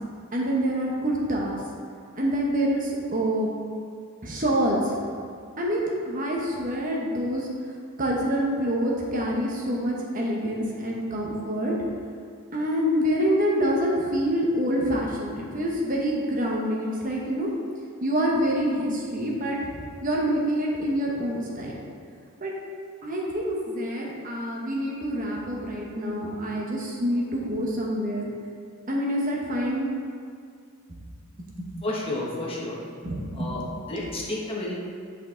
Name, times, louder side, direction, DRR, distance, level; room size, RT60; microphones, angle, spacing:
voice 1, 0.3-1.5 2.2-3.5 4.2-5.0 5.6-7.5 8.0-11.7 12.5-17.5 18.0-21.7 22.4-22.5 23.0-28.3 28.9-29.9 31.6-31.8 33.0-33.5, equal, 40° right, -2 dB, 1.1 m, -26 dB
voice 2, 31.8-32.8 33.3-33.6 33.9-34.8, left 2 dB, 25° left, -4 dB, 1.2 m, -31 dB
8.6 x 5.4 x 3.8 m, 2.3 s
head